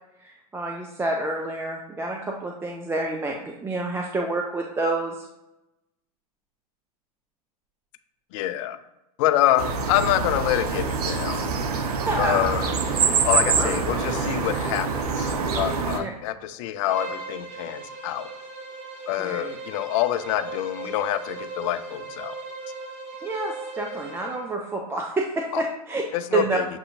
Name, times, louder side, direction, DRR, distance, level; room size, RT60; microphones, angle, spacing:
voice 1, 0.2-5.3 12.1-12.5 13.6-13.7 16.0-16.1 19.2-19.6 23.2-26.0 26.3-26.6, right 2 dB, 10° right, 1 dB, 0.4 m, -28 dB
voice 2, 8.3-8.8 9.2-11.4 12.2-12.7 13.2-18.3 19.1-22.4 25.5-25.6 26.1-26.7, left 13 dB, 55° left, 11 dB, 0.4 m, -26 dB
sound 1, 9.6-16.0, right 5 dB, 75° right, 0.6 m, -25 dB
Bowed string instrument, 16.8-24.5, right 3 dB, 40° right, 1.2 m, -38 dB
6.8 x 2.7 x 2.6 m, 0.92 s
hypercardioid pair, 100°, 20 cm